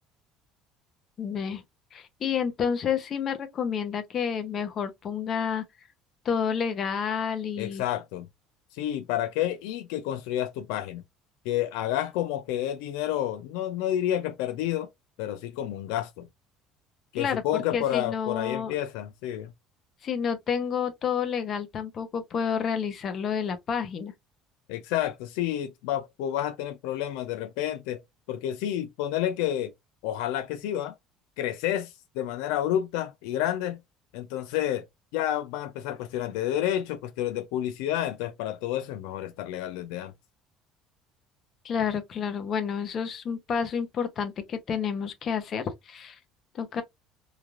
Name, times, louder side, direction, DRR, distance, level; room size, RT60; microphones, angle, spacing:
voice 1, 1.2-1.6 1.9-5.7 6.2-7.8 17.1-18.7 20.0-24.1 41.6-46.2 46.6-46.8, left 7 dB, 40° left, 0.7 m, -29 dB
voice 2, 7.6-8.3 8.7-11.0 11.4-14.9 15.2-16.3 17.1-19.5 24.7-28.0 28.3-29.7 30.0-30.9 31.4-33.8 34.1-34.9 35.1-40.1, left 12 dB, 90° left, 0.4 m, -30 dB
3.2 x 2.4 x 2.4 m
cardioid pair, 135°, 0 cm